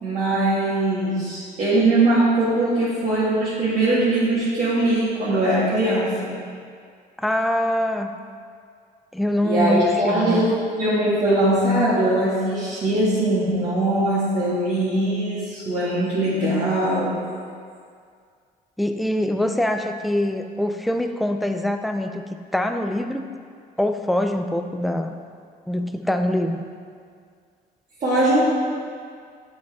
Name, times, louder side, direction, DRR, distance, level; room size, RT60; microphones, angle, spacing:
voice 1, 0.0-6.3 9.4-10.5 10.8-17.1 28.0-28.5, right 1 dB, 45° right, -11 dB, 1.6 m, -21 dB
voice 2, 7.2-8.1 9.1-10.6 18.8-22.2 22.5-23.3 23.8-25.1 25.7-26.6, left 1 dB, ahead, 6 dB, 0.3 m, -24 dB
7.0 x 5.2 x 3.5 m, 2.1 s
cardioid pair, 110°, 17 cm